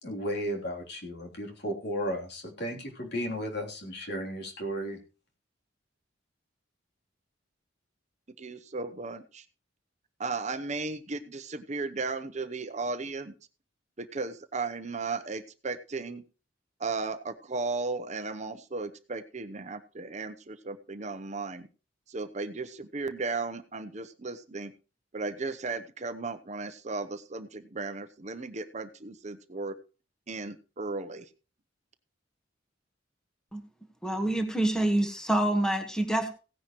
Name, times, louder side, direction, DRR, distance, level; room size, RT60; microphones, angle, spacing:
voice 1, 0.0-5.0, equal, 60° left, 0 dB, 3.4 m, -34 dB
voice 2, 8.4-9.4 10.2-13.3 14.0-16.2 16.8-21.7 22.1-24.7 25.1-29.8 30.3-31.3, right 3 dB, 40° right, 10 dB, 0.8 m, -35 dB
voice 3, 34.0-36.3, right 1 dB, 5° left, 5 dB, 1.4 m, -26 dB
16.5 x 10.0 x 3.1 m, 0.34 s
head